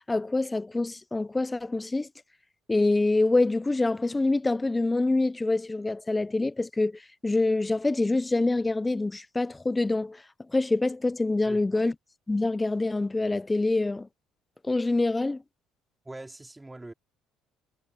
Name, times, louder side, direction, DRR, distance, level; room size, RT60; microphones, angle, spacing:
voice 1, 0.1-2.1 2.7-10.2 10.5-11.9 12.3-14.1 14.6-15.4, left 2 dB, 15° left, 1.0 m, -26 dB
voice 2, 11.4-11.8 16.0-16.9, right 2 dB, 15° right, 4.8 m, -43 dB
hypercardioid pair, 65°, 0 cm